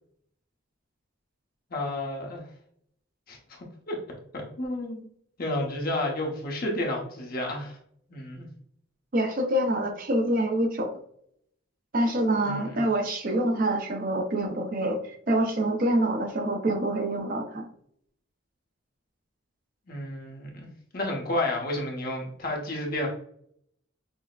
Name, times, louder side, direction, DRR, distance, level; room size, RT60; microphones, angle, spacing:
voice 1, 1.7-2.4 3.3-3.6 3.9-4.0 4.3-5.0 5.4-7.8 8.1-8.5 12.4-12.8 19.9-20.7 20.9-23.1, left 1 dB, 45° left, -1 dB, 1.0 m, -31 dB
voice 2, 9.1-10.9 11.9-17.7, right 1 dB, 40° right, 4 dB, 0.6 m, -26 dB
6.1 x 2.1 x 2.4 m, 0.66 s
head